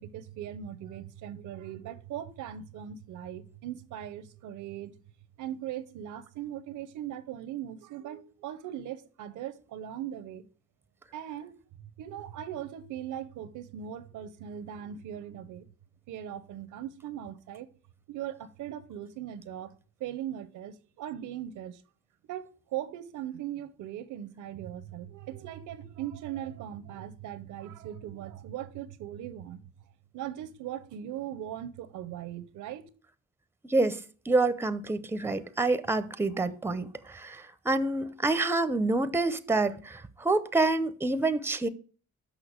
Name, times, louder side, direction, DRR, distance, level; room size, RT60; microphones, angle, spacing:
voice 1, 0.0-4.9 5.4-10.4 11.1-11.6 12.0-15.7 16.1-17.7 18.1-19.7 20.0-21.8 22.3-29.6 30.1-32.9, right 11 dB, 80° right, 0.7 m, -39 dB
voice 2, 33.6-41.7, right 2 dB, 10° right, 0.6 m, -27 dB
6.5 x 5.7 x 6.4 m
cardioid pair, 90°, 30 cm